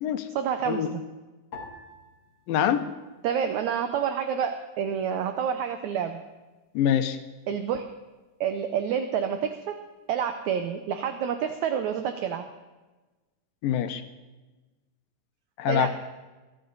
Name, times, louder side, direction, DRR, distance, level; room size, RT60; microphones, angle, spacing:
voice 1, 0.4-1.0 3.2-6.2 7.5-7.8 8.4-9.7 10.1-12.4 15.6-15.9, right 8 dB, 75° right, 7 dB, 1.9 m, -28 dB
sound 1, 1.5-4.0 4.3-5.2 5.8-6.2, left 3 dB, 60° left, 3.0 m, -49 dB
voice 2, 2.5-2.9 6.7-7.2 13.6-14.0 15.6-15.9, left 9 dB, 90° left, 9 dB, 2.7 m, -24 dB
22.0 x 13.0 x 4.1 m, 1.2 s
omnidirectional pair, 3.9 m